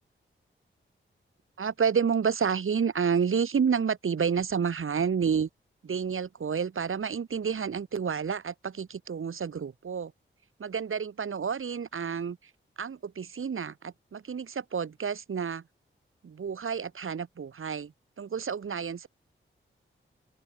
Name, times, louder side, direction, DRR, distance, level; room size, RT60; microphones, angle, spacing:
voice 1, 1.6-5.5 5.8-10.1 10.6-12.4 12.8-15.6 16.2-19.1, right 6 dB, 80° right, 4.7 m, -30 dB
open air
wide cardioid pair, 95°, 21 cm